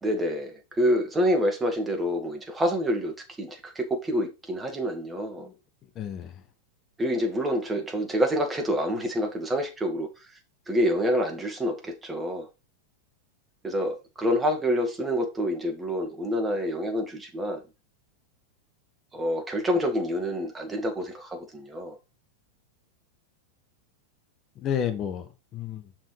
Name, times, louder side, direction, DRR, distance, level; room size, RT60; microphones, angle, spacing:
voice 1, 0.0-5.5 7.0-10.1 10.7-12.5 13.6-17.6 19.1-22.0, equal, 15° right, 1.8 m, -27 dB
voice 2, 5.9-6.4 24.5-25.9, left 8 dB, 30° left, 1.2 m, -32 dB
6.1 x 4.5 x 4.8 m
figure-of-eight pair, 90°, 0 cm